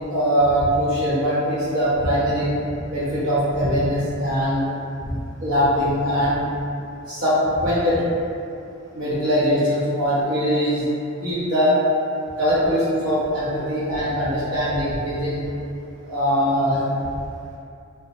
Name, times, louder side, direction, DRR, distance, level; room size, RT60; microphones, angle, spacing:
voice 1, 0.1-2.5 2.9-4.7 5.0-5.1 5.4-6.4 7.1-8.1 8.9-10.9 11.2-11.8 12.4-15.4 16.0-16.8, equal, 80° right, -9 dB, 0.8 m, -21 dB
2.7 x 2.1 x 2.5 m, 2.6 s
head